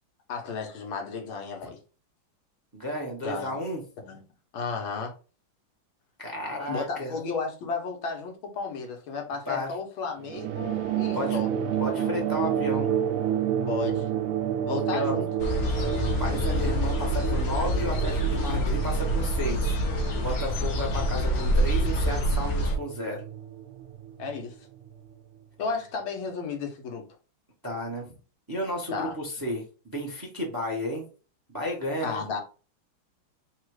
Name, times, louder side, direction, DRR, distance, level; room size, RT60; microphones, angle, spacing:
voice 1, 0.3-1.8 3.2-3.6 4.0-4.2 4.5-5.1 6.7-11.5 13.7-14.1 14.7-15.3 24.2-24.6 25.6-27.0 28.9-29.2 32.0-32.4, left 4 dB, 80° left, 1.8 m, -33 dB
voice 2, 2.7-3.8 6.2-7.2 9.5-9.7 11.1-11.4 11.8-12.9 14.7-15.2 15.7-15.9 16.2-19.7 20.2-23.2 27.6-28.1 28.5-29.6 29.9-31.0 31.5-32.2, left 1 dB, 15° right, 0.9 m, -32 dB
sound 1, 10.2-25.1, right 10 dB, 90° right, 1.4 m, -31 dB
sound 2, 15.4-22.8, equal, 55° left, 1.1 m, -26 dB
4.1 x 2.4 x 4.7 m
omnidirectional pair, 2.2 m